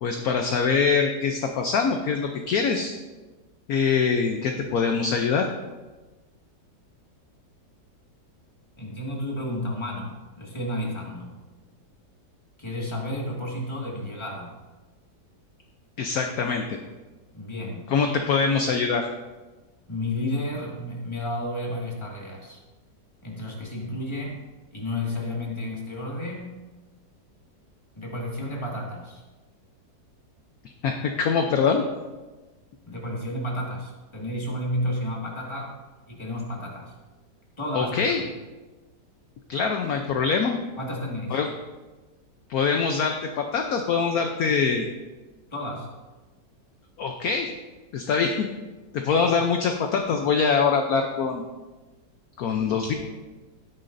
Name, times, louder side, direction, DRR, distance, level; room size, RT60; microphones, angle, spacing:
voice 1, 0.0-2.9 3.7-5.5 16.0-16.8 17.9-19.1 30.8-31.8 37.7-38.2 39.5-40.6 41.3-41.5 42.5-44.9 47.0-47.5 47.9-48.5 48.9-51.4 52.4-52.9, left 5 dB, 65° left, 4 dB, 1.1 m, -23 dB
voice 2, 8.8-11.4 12.6-14.6 17.3-17.9 19.9-22.6 23.2-24.4 24.7-26.6 27.9-29.2 32.9-35.7 36.1-36.9 37.6-38.2 40.8-41.4 45.5-45.9 49.2-49.3, left 1 dB, 15° left, -2 dB, 1.8 m, -32 dB
12.5 x 10.5 x 2.6 m, 1.2 s
omnidirectional pair, 1.9 m